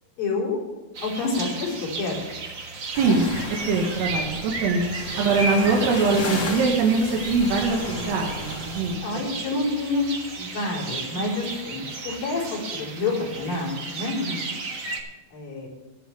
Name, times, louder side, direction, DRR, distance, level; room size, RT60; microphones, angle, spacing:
voice 1, 0.2-0.6 1.0-2.2 3.1-3.2 9.0-10.1 10.4-14.2 15.3-15.7, left 3 dB, 60° left, -4 dB, 5.6 m, -28 dB
sound 1, 0.9-15.0, right 3 dB, 70° right, 1.1 m, -34 dB
sound 2, 2.9-9.0, left 2 dB, 35° left, 2.0 m, -34 dB
voice 2, 3.0-3.3 3.7-4.9 5.2-9.0 14.2-14.6, right 4 dB, 90° right, 0 dB, 3.6 m, -23 dB
23.0 x 8.2 x 3.2 m, 1.2 s
omnidirectional pair, 4.6 m